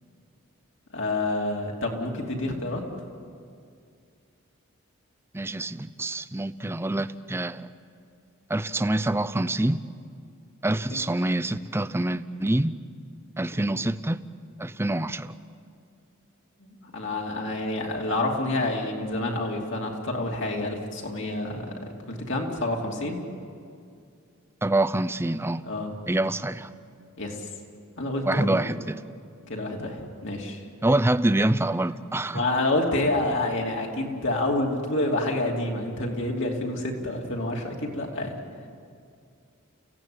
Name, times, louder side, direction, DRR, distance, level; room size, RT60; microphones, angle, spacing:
voice 1, 0.9-2.8 10.6-11.0 13.6-13.7 16.6-21.7 22.1-23.2 25.7-25.9 27.2-27.5 28.0-28.8 29.5-30.6 32.3-38.4, left 2 dB, 60° left, 0 dB, 3.0 m, -28 dB
voice 2, 5.3-7.7 8.5-9.8 10.6-12.8 13.4-14.2 14.6-15.3 24.6-25.6 26.1-26.7 28.2-29.0 30.8-32.4, right 1 dB, 10° right, 14 dB, 0.5 m, -26 dB
29.5 x 16.0 x 8.8 m, 2.3 s
head